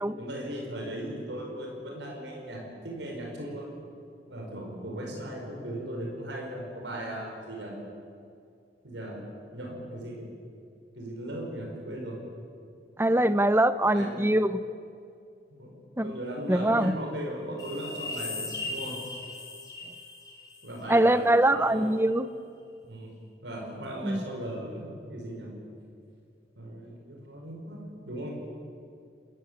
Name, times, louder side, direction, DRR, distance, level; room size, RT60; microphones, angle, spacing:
voice 1, 0.2-3.7 4.3-7.8 8.8-9.2 9.5-10.3 11.0-12.2 13.9-14.2 15.6-19.0 20.6-21.9 22.8-23.1 23.4-25.5 26.6-28.3, right 1 dB, 85° right, 0 dB, 5.3 m, -37 dB
voice 2, 13.0-14.6 16.0-16.1 16.5-16.9 20.9-22.3 24.0-24.2, right 1 dB, 15° right, 13 dB, 0.7 m, -23 dB
sound 1, 17.6-21.0 21.4-21.5, left 3 dB, 20° left, 5.5 m, -38 dB
28.5 x 15.5 x 8.9 m, 2.4 s
head